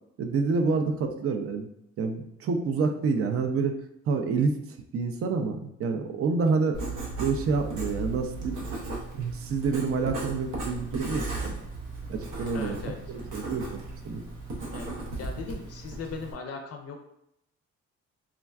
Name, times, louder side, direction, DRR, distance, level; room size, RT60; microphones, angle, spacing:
voice 1, 0.2-1.7 2.0-3.8 4.1-4.5 4.9-6.8 7.2-8.6 9.1-11.5 12.1-12.8 13.1-13.8 14.0-14.2, right 4 dB, 50° right, 6 dB, 0.4 m, -28 dB
Writing, 6.7-16.3, right 2 dB, 85° right, 0.7 m, -36 dB
voice 2, 12.5-13.0 14.7-17.1, left 5 dB, 55° left, 3 dB, 0.4 m, -39 dB
3.4 x 2.1 x 2.3 m, 0.77 s
cardioid pair, 90°, 30 cm